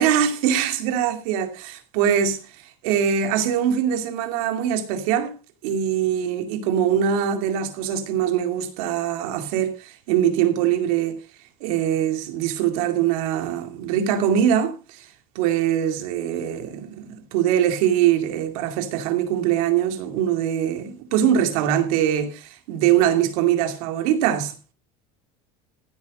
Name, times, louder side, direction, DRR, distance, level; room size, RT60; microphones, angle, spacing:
voice 1, 0.0-5.3 5.6-11.2 11.6-15.1 15.3-24.5, right 9 dB, 85° right, 2.5 m, -22 dB
16.0 x 8.5 x 5.0 m
cardioid pair, 155°, 18 cm